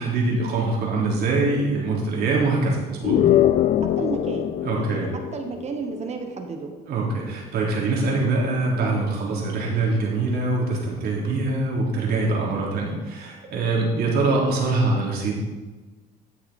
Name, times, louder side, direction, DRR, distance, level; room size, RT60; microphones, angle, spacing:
voice 1, 0.0-3.2 4.6-5.1 6.9-15.4, right 3 dB, 70° right, -3 dB, 3.4 m, -24 dB
sound 1, 3.0-6.0, left 12 dB, 50° left, 0.4 m, -22 dB
voice 2, 3.8-6.7, right 4 dB, 40° right, 4 dB, 1.4 m, -32 dB
13.5 x 6.6 x 4.3 m, 1.2 s
cardioid pair, 110°, 17 cm